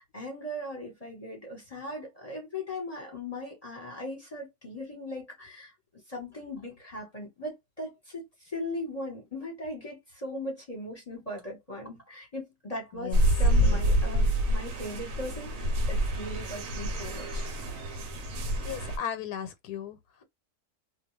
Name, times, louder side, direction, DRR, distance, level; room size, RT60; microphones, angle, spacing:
voice 1, 0.0-5.7 6.1-17.5, left 1 dB, 25° left, 1.0 m, -39 dB
sound 1, 13.1-19.0, equal, 65° right, 1.0 m, -27 dB
voice 2, 18.6-20.0, left 9 dB, 85° left, 1.1 m, -36 dB
2.5 x 2.3 x 3.0 m
omnidirectional pair, 1.7 m